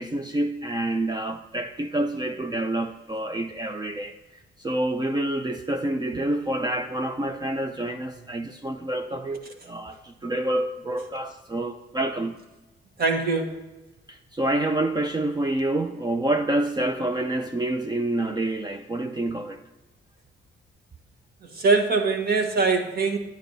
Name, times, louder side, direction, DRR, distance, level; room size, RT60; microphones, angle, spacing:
voice 1, 0.0-4.1 4.6-12.4 14.1-19.6, right 1 dB, 20° right, 5 dB, 0.5 m, -27 dB
voice 2, 13.0-13.6 21.4-23.2, right 4 dB, 50° right, 4 dB, 1.3 m, -23 dB
10.5 x 8.9 x 2.7 m, 1.1 s
cardioid pair, 90°, 20 cm